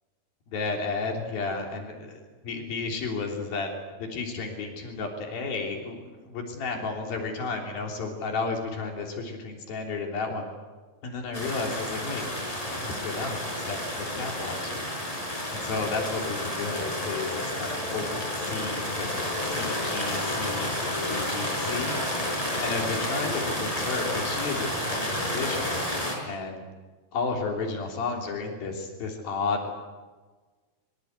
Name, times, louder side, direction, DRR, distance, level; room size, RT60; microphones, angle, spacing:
voice 1, 0.5-3.7 4.0-10.5 11.0-12.2 12.7-14.9 15.5-22.0 22.6-25.8 26.2-26.7 27.1-29.7, left 4 dB, 80° left, 2 dB, 5.1 m, -33 dB
sound 1, 11.3-26.1, left 1 dB, 10° left, 5.9 m, -31 dB
sound 2, 16.7-23.4, left 5 dB, 50° left, 1.7 m, -39 dB
24.0 x 24.0 x 8.2 m, 1.3 s
omnidirectional pair, 4.1 m